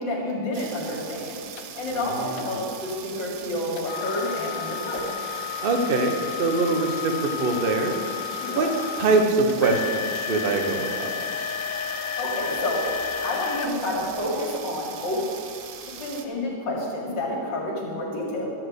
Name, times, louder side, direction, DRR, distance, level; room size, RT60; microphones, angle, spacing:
voice 1, 0.0-5.1 8.4-8.7 12.2-15.2 16.0-18.5, left 1 dB, 65° left, -2 dB, 2.7 m, -29 dB
sound 1, 0.5-16.3, right 8 dB, 85° right, 1.5 m, -41 dB
sound 2, 1.6-1.7 2.4-2.6 3.8-14.6 15.2-15.3 15.9-16.0, left 9 dB, 90° left, 1.4 m, -32 dB
voice 2, 2.0-2.4 5.6-7.9 8.5-8.7 9.0-11.3, right 3 dB, 50° right, 4 dB, 0.7 m, -23 dB
12.5 x 4.4 x 8.0 m, 2.3 s
omnidirectional pair, 2.1 m